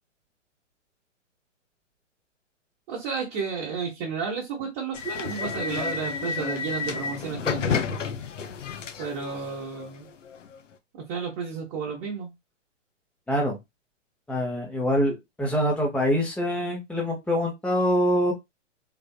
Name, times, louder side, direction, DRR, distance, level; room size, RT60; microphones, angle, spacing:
voice 1, 2.9-8.0 9.0-10.1 10.9-12.3, right 5 dB, 30° right, 1.0 m, -32 dB
sound 1, 4.9-10.6, left 6 dB, 75° left, 0.7 m, -31 dB
voice 2, 13.3-13.6 14.3-18.3, equal, 5° left, 0.8 m, -25 dB
3.4 x 2.5 x 2.3 m
figure-of-eight pair, 120°, 37 cm